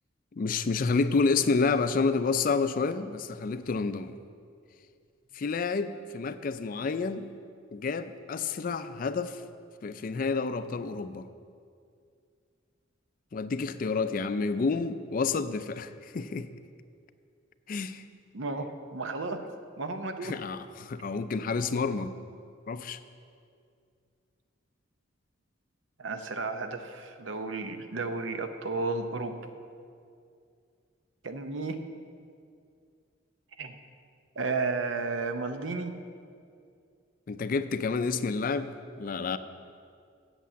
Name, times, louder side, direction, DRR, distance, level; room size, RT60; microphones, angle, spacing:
voice 1, 0.3-4.2 5.3-7.3 7.7-9.4 9.8-11.3 13.3-16.5 17.7-18.0 20.2-22.1 22.7-23.0 37.3-39.4, left 4 dB, 45° left, 12 dB, 0.4 m, -29 dB
voice 2, 18.3-19.4 19.8-20.3 26.0-29.4 31.2-31.8 33.6-33.7 34.4-35.9, right 3 dB, 75° right, 8 dB, 0.7 m, -33 dB
8.3 x 7.3 x 7.4 m, 2.3 s
head